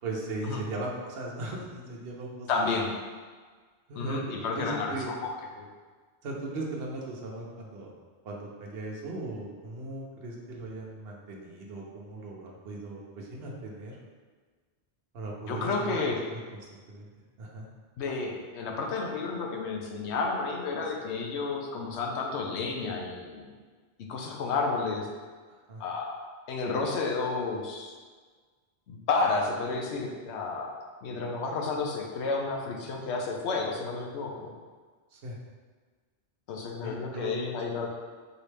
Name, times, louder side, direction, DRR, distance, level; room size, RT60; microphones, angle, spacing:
voice 1, 0.0-2.7 3.9-5.1 6.2-7.9 8.2-14.0 15.1-16.0 16.5-17.1 17.4-17.7 25.5-25.8 35.1-35.4 36.8-37.4, right 2 dB, 65° right, -2 dB, 1.0 m, -38 dB
voice 2, 2.5-2.9 4.0-5.7 15.5-16.2 18.0-23.5 24.1-25.1 25.8-26.2 26.5-27.9 28.9-30.7 31.0-34.5 36.5-37.9, left 4 dB, 75° left, 1 dB, 1.0 m, -31 dB
4.7 x 3.2 x 3.3 m, 1.5 s
omnidirectional pair, 1.2 m